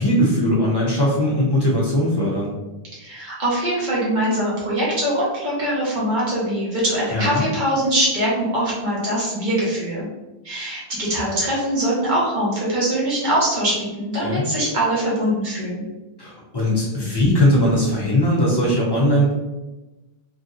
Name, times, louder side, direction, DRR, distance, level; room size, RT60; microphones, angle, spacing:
voice 1, 0.0-2.5 7.1-7.4 14.2-14.4 16.2-19.3, left 1 dB, 30° left, -6 dB, 0.5 m, -19 dB
voice 2, 2.9-10.1 10.4-15.8, right 1 dB, 50° right, -7 dB, 1.3 m, -22 dB
3.1 x 2.5 x 2.6 m, 1.1 s
omnidirectional pair, 1.1 m